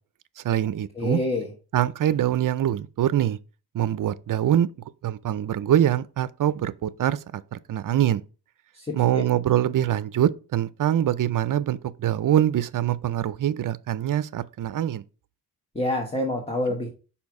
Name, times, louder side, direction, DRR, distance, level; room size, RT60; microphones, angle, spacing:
voice 1, 0.4-1.2 1.7-3.4 3.7-4.7 5.0-8.2 8.9-15.0, right 11 dB, 50° right, 0.5 m, -24 dB
voice 2, 0.9-1.5 8.7-9.2 15.7-16.9, left 1 dB, 15° left, 1.2 m, -27 dB
5.6 x 4.4 x 4.7 m
wide cardioid pair, 120°, 41 cm